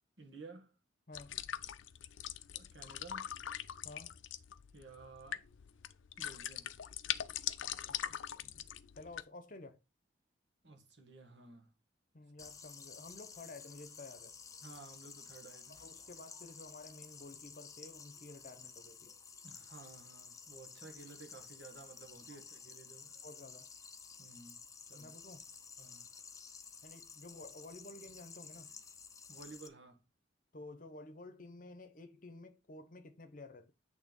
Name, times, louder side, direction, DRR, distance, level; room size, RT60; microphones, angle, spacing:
voice 1, 0.2-0.7 2.5-3.4 4.7-5.5 6.2-6.7 10.6-11.7 14.6-15.8 19.4-23.1 24.2-24.6 24.9-25.1 25.8-26.1 29.3-30.0, right 3 dB, 65° right, 1.6 m, -54 dB
sound 1, 1.1-9.2, left 10 dB, 80° left, 0.5 m, -42 dB
voice 2, 1.1-1.6 3.8-4.2 7.6-8.7 8.9-9.8 12.1-14.3 15.7-19.2 23.2-23.7 24.9-25.5 26.8-28.8 30.5-33.7, left 2 dB, 45° left, 0.8 m, -52 dB
sound 2, 12.4-29.7, left 5 dB, 15° left, 0.6 m, -53 dB
8.5 x 3.4 x 5.2 m
head